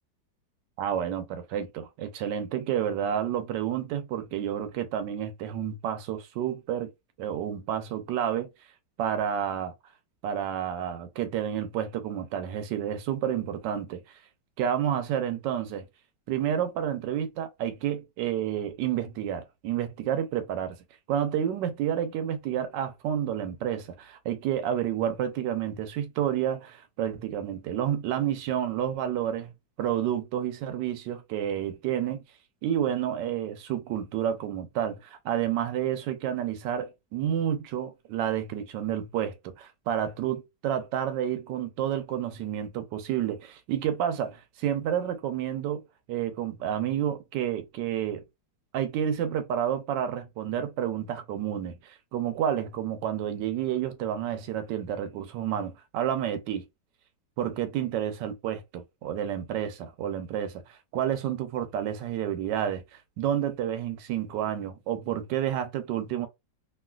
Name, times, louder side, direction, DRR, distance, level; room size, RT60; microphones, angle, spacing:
voice 1, 0.8-6.9 7.2-8.5 9.0-9.7 10.2-14.0 14.6-15.9 16.3-20.8 21.1-32.2 32.6-45.8 46.1-48.2 48.7-56.6 57.4-66.3, right 10 dB, 75° right, 1.2 m, -30 dB
3.1 x 2.6 x 2.3 m
omnidirectional pair, 2.0 m